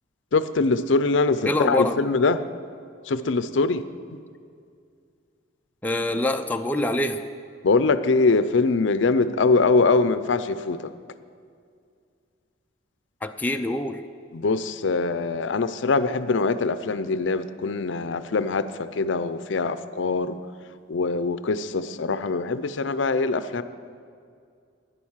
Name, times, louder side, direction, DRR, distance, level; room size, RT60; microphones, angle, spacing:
voice 1, 0.3-2.4 3.1-3.8 7.6-10.9 14.3-20.4 20.9-23.6, left 3 dB, 70° left, 13 dB, 0.5 m, -23 dB
voice 2, 1.4-2.1 5.8-7.2 13.2-14.0, left 1 dB, 10° left, 5 dB, 0.4 m, -25 dB
11.0 x 9.9 x 7.3 m, 2.3 s
head